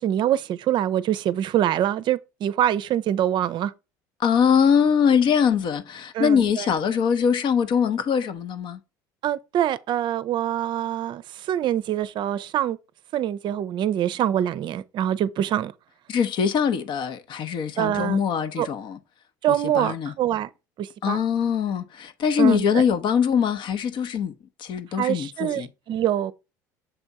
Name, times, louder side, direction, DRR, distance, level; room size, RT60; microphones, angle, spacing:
voice 1, 0.0-3.7 6.1-6.7 9.2-11.2 11.5-12.8 13.1-15.7 17.8-18.2 18.6-18.7 19.4-20.5 20.8-21.2 22.4-22.8 25.0-26.3, right 11 dB, 50° right, 0.5 m, -24 dB
voice 2, 4.2-8.8 16.1-19.0 19.5-20.1 21.0-24.3 24.6-25.7, left 7 dB, 55° left, 0.9 m, -22 dB
7.0 x 3.4 x 4.1 m
hypercardioid pair, 75°, 10 cm